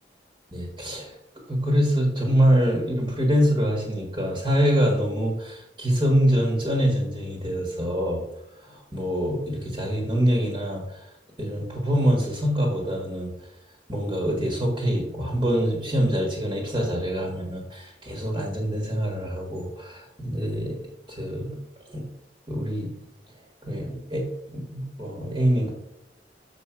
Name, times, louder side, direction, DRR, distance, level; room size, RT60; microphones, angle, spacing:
voice 1, 0.5-1.2 1.5-8.2 8.6-11.0 11.4-13.3 13.9-20.8 21.1-21.6 21.9-22.0 22.5-22.9 23.6-24.3 24.5-25.7, equal, 25° right, -1 dB, 1.6 m, -25 dB
6.7 x 6.0 x 5.0 m, 0.87 s
head